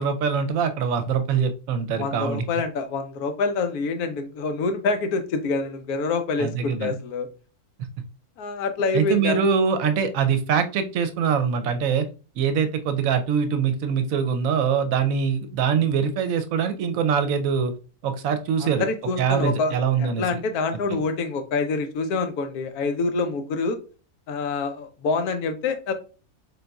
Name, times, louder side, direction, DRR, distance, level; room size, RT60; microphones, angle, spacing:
voice 1, 0.0-2.4 6.4-7.0 8.9-12.1 12.4-17.7 18.0-18.9 19.2-20.4, right 6 dB, 70° right, 9 dB, 1.0 m, -23 dB
voice 2, 2.0-7.3 8.4-9.5 18.6-23.8 24.3-25.9, left 4 dB, 80° left, 8 dB, 1.2 m, -26 dB
3.9 x 3.8 x 2.2 m, 0.35 s
omnidirectional pair, 1.6 m